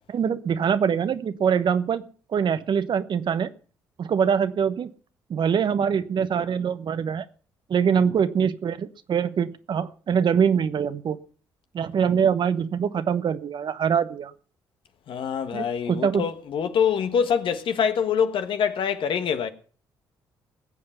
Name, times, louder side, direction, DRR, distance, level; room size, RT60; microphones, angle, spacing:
voice 1, 0.1-2.1 2.3-3.5 4.0-4.9 5.3-7.3 7.7-11.2 11.7-14.3 15.5-16.3, right 7 dB, 55° right, 1.0 m, -24 dB
voice 2, 15.1-19.5, left 7 dB, 60° left, 1.4 m, -25 dB
19.5 x 7.7 x 5.8 m
hypercardioid pair, 50°, 10 cm